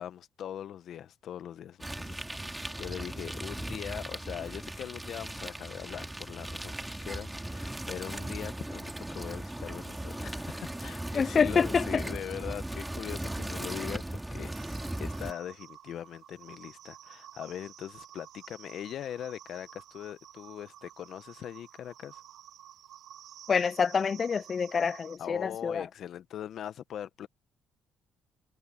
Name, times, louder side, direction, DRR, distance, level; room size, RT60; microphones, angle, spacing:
voice 1, 0.0-6.7 7.0-22.2 25.2-27.3, left 10 dB, 65° left, 1.0 m, -41 dB
sound 1, 1.8-15.3, right 1 dB, 10° right, 2.7 m, -38 dB
voice 2, 11.1-12.0 23.5-25.8, left 6 dB, 40° left, 0.3 m, -27 dB
sound 2, 14.5-25.2, right 11 dB, 70° right, 2.9 m, -52 dB
supercardioid pair, 75°, 0 cm